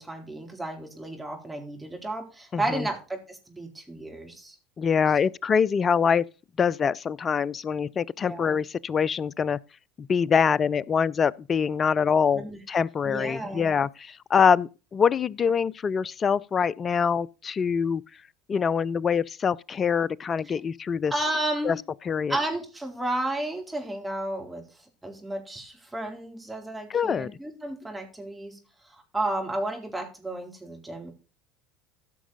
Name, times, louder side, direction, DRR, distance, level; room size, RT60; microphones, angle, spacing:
voice 1, 0.0-4.6 8.2-8.5 12.3-12.6 13.0-13.7 20.5-20.6 21.1-21.8 22.3-28.6 28.8-31.1, right 1 dB, 10° right, 4.0 m, -32 dB
voice 2, 2.5-2.9 4.8-6.2 6.6-9.6 10.0-18.0 18.5-21.1 21.6-21.8 22.1-22.4 26.9-27.3, left 6 dB, 35° left, 0.5 m, -24 dB
15.5 x 6.1 x 4.0 m
hypercardioid pair, 70°, 0 cm